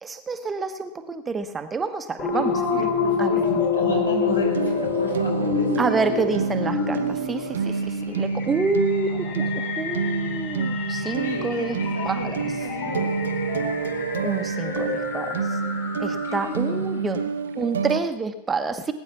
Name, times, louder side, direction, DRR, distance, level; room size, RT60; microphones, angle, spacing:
voice 1, 0.0-2.6 3.2-3.3 5.8-11.8 12.0-12.4 14.2-15.6 16.0-18.9, right 4 dB, 15° right, 9 dB, 1.1 m, -28 dB
sound 1, 2.2-16.7, left 5 dB, 35° left, 5.9 m, -28 dB
voice 2, 2.3-5.8 11.2-13.2 16.1-16.8, left 1 dB, 80° left, 1 dB, 5.7 m, -32 dB
sound 2, 4.5-18.0, right 5 dB, 65° right, 0.9 m, -28 dB
19.5 x 9.6 x 7.2 m, 0.88 s
figure-of-eight pair, 90°, 0 cm